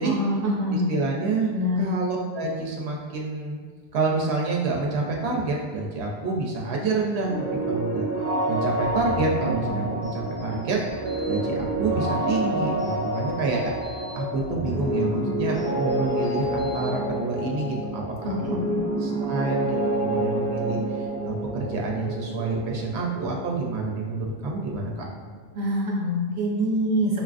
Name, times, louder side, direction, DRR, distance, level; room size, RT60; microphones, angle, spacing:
voice 1, 0.0-0.9 1.5-1.8 18.2-18.9 25.5-27.2, equal, 45° right, -5 dB, 1.0 m, -25 dB
voice 2, 0.7-1.5 1.8-3.6 3.9-7.3 7.7-8.1 8.5-10.8 11.3-13.6 14.1-18.4 19.0-25.1, right 3 dB, 90° right, -1 dB, 0.8 m, -28 dB
sound 1, 7.2-24.9, right 1 dB, 20° left, 0.5 m, -29 dB
sound 2, 8.8-17.1, right 1 dB, 60° left, 1.5 m, -37 dB
5.6 x 2.4 x 2.4 m, 1.5 s
omnidirectional pair, 1.1 m